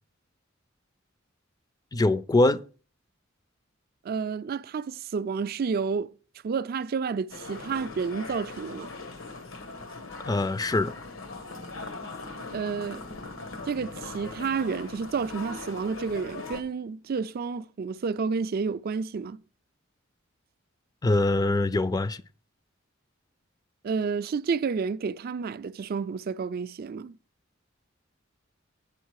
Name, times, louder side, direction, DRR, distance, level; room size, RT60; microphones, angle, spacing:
voice 1, 1.9-2.6 10.3-10.9 21.0-22.2, left 2 dB, 20° left, 0.4 m, -23 dB
voice 2, 4.0-6.1 6.4-8.9 12.5-13.0 13.7-19.4 23.8-27.1, right 5 dB, 50° right, 0.4 m, -30 dB
sound 1, 7.3-16.6, left 3 dB, 85° left, 1.3 m, -40 dB
9.0 x 7.2 x 4.7 m
head